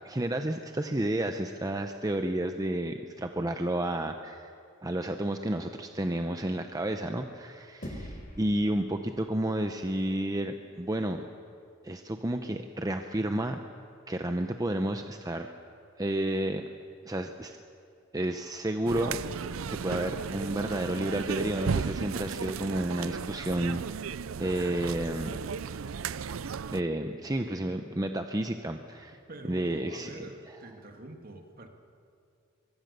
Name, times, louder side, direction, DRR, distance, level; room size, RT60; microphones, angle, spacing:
voice 1, 0.0-4.5 4.8-11.3 11.8-13.6 14.1-15.5 16.0-16.6 17.0-17.6 18.1-19.2 19.6-24.1 24.4-25.3 26.7-29.2 29.5-30.1, right 1 dB, 20° right, 6 dB, 0.8 m, -31 dB
sound 1, 7.8-10.4, equal, 45° left, 4.3 m, -45 dB
sound 2, 18.9-26.8, right 5 dB, 85° right, 0.5 m, -35 dB
voice 2, 29.3-31.7, right 1 dB, 45° right, 4 dB, 2.3 m, -45 dB
24.0 x 23.0 x 6.8 m, 2.4 s
head